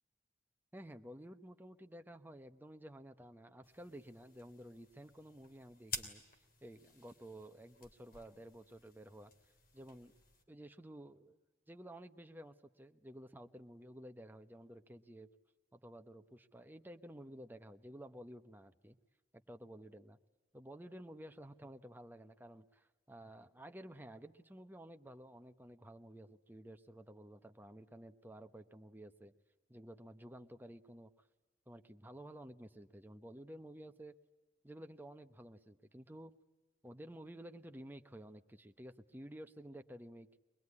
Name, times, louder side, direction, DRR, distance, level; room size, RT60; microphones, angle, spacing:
voice 1, 0.7-9.3 9.7-10.1 10.5-11.4 11.7-15.3 15.7-19.0 19.3-20.2 20.5-29.3 29.7-31.1 31.7-34.1 34.6-36.3 36.8-40.3, right 1 dB, 10° right, 7 dB, 0.9 m, -53 dB
sound 1, 3.6-10.4, left 4 dB, 50° left, 3.0 m, -51 dB
23.5 x 21.0 x 9.7 m, 1.1 s
head